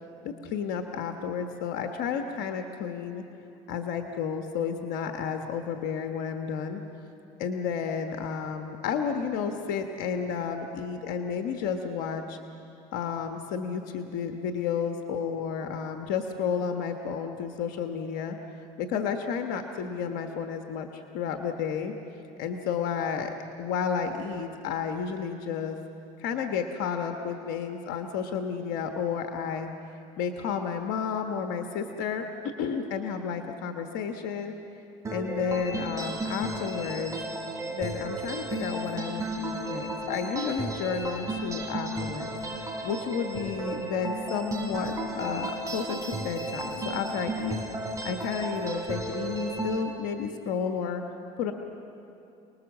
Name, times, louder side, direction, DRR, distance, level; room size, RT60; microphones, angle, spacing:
voice 1, 0.2-3.2 3.7-6.8 7.4-12.4 12.9-18.4 18.8-21.9 22.4-25.8 26.2-29.7 30.2-34.5 35.1-37.2 37.7-42.3 42.8-47.6 48.0-51.0 51.4-51.5, left 6 dB, 80° left, 5 dB, 1.3 m, -31 dB
sound 1, 35.0-49.8, right 2 dB, 20° right, 5.2 m, -34 dB
29.0 x 19.5 x 7.4 m, 2.8 s
supercardioid pair, 85°, 15 cm